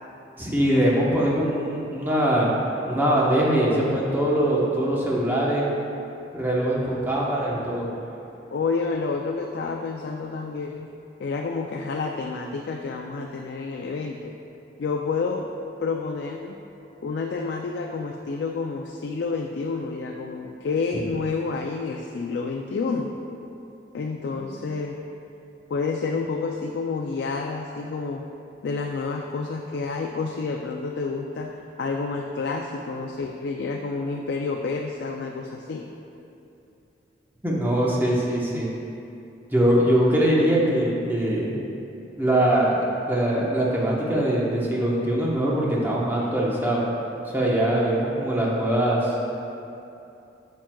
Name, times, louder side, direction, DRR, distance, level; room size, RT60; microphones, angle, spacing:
voice 1, 0.4-2.5 2.9-5.7 6.3-7.9 37.4-38.7 39.5-41.5 42.2-42.8 43.1-46.8 47.3-49.1, right 1 dB, 10° right, -5 dB, 0.9 m, -22 dB
voice 2, 8.5-10.9 11.2-14.2 14.8-15.5 15.8-16.6 17.0-23.1 23.9-25.0 25.7-28.2 28.6-35.8, left 4 dB, 65° left, 2 dB, 0.3 m, -29 dB
9.0 x 5.9 x 2.3 m, 2.8 s
head